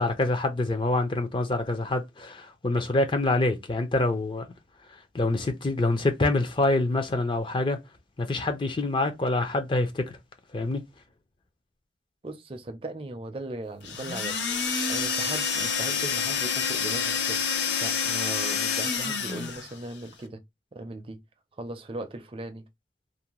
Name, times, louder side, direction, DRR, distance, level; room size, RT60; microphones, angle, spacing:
voice 1, 0.0-4.5 5.1-7.8 8.2-10.1 10.5-10.8, left 2 dB, 25° left, 0.4 m, -26 dB
voice 2, 12.2-14.4 14.9-17.4 17.8-20.4 20.7-21.2 21.6-22.6, right 2 dB, 30° right, 0.5 m, -38 dB
sound 1, 13.8-19.7, left 6 dB, 75° left, 0.6 m, -28 dB
2.5 x 2.1 x 2.9 m
head